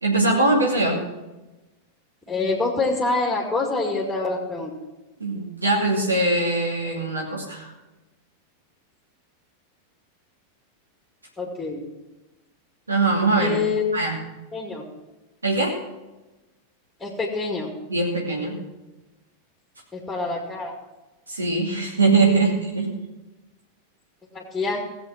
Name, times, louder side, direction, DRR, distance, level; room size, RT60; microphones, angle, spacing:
voice 1, 0.0-1.0 5.2-7.7 12.9-13.6 13.9-14.2 15.4-15.8 17.9-18.5 21.3-22.9, right 3 dB, 75° right, -2 dB, 2.7 m, -22 dB
voice 2, 2.3-4.7 11.4-11.8 13.4-13.9 14.5-14.9 17.0-17.7 19.9-20.8 24.3-24.8, left 3 dB, 5° left, -1 dB, 2.4 m, -26 dB
18.0 x 7.9 x 5.9 m, 1.1 s
figure-of-eight pair, 90°, 0 cm